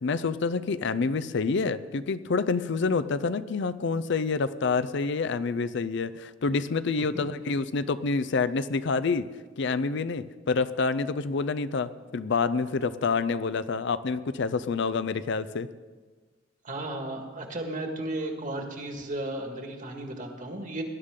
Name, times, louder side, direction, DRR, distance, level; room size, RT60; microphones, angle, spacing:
voice 1, 0.0-9.3 9.6-15.7, left 4 dB, 65° left, 14 dB, 0.5 m, -27 dB
voice 2, 16.6-20.8, right 1 dB, 45° right, 3 dB, 1.8 m, -34 dB
19.0 x 11.5 x 3.8 m, 1.4 s
head